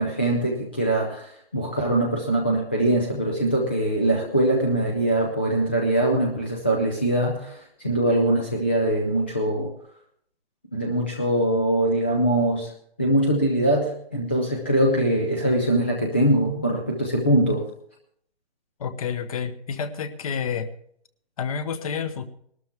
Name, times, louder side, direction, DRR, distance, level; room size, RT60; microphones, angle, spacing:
voice 1, 0.0-9.7 10.7-12.7 13.0-17.6, right 1 dB, 10° left, -1 dB, 0.4 m, -22 dB
voice 2, 18.8-20.7 21.4-22.2, left 6 dB, 35° left, 11 dB, 1.1 m, -29 dB
20.0 x 12.5 x 3.5 m, 0.66 s
hypercardioid pair, 165°, 33 cm